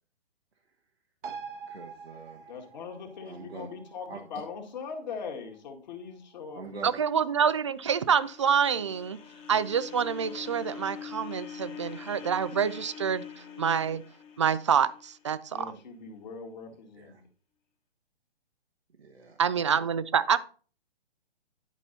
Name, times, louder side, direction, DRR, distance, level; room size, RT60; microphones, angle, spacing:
sound 1, 1.2-8.2 8.5-8.6, right 6 dB, 55° right, 1.1 m, -47 dB
voice 1, 1.7-2.5 3.3-3.7 4.1-4.2 6.5-7.0 16.9-17.2 19.0-19.9, right 3 dB, 75° right, 1 dB, 1.3 m, -44 dB
voice 2, 2.5-7.0 15.5-17.3, left 5 dB, 45° left, 3 dB, 1.9 m, -41 dB
voice 3, 6.8-9.2 9.5-13.2 13.6-14.0 14.4-15.8 19.4-20.4, right 7 dB, 30° right, 16 dB, 0.3 m, -27 dB
sound 2, 7.4-15.6, left 7 dB, 20° left, 1.3 m, -44 dB
11.0 x 5.3 x 4.0 m, 0.40 s
figure-of-eight pair, 125°, 31 cm